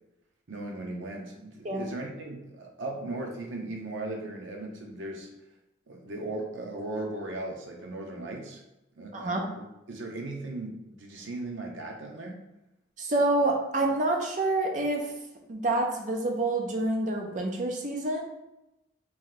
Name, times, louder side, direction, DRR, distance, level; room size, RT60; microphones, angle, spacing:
voice 1, 0.5-5.3 5.9-8.6 8.9-12.4, right 2 dB, 85° right, 1 dB, 0.7 m, -37 dB
voice 2, 9.1-9.5 13.0-15.1 15.5-18.2, right 2 dB, 40° right, 2 dB, 0.5 m, -27 dB
3.0 x 2.7 x 3.8 m, 0.92 s
head